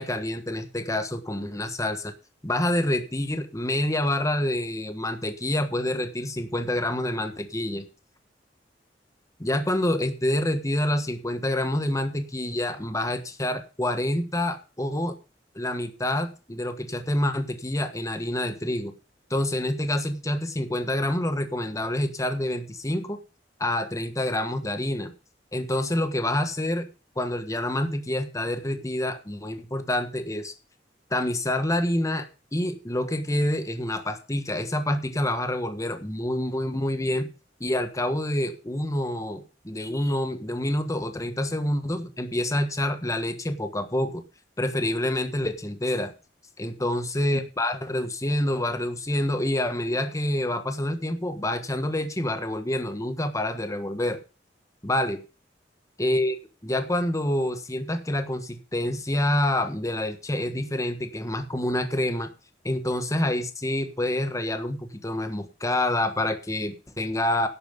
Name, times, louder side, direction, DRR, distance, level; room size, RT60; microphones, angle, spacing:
voice 1, 0.0-2.1 2.4-7.8 9.4-15.1 15.5-18.9 19.3-23.2 23.6-25.1 25.5-26.9 27.2-30.5 31.1-32.3 32.5-37.3 37.6-44.2 44.6-46.1 46.6-54.2 54.8-55.2 56.0-56.4 56.6-62.3 62.6-67.5, left 1 dB, 20° left, 8 dB, 1.4 m, -27 dB
11.0 x 8.7 x 5.4 m, 0.32 s
head